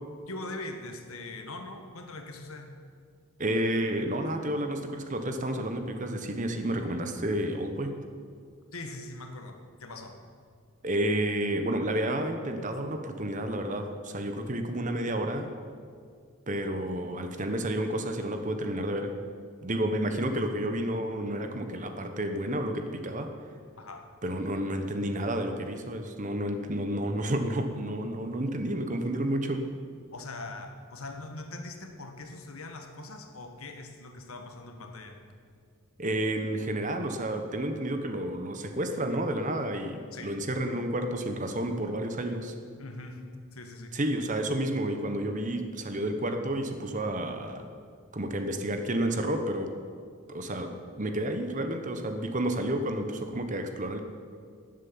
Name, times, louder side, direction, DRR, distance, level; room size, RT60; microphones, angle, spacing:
voice 1, 0.3-2.7 8.7-10.2 23.8-24.1 30.1-35.2 40.1-40.4 42.8-43.3 43.5-43.9, left 2 dB, 85° left, 5 dB, 1.6 m, -41 dB
voice 2, 3.4-7.9 10.8-15.5 16.5-19.1 19.6-23.3 24.2-29.6 36.0-42.5 43.9-47.7 48.1-49.7 50.3-54.0, right 1 dB, 35° right, 6 dB, 1.1 m, -30 dB
12.5 x 7.6 x 9.4 m, 2.1 s
head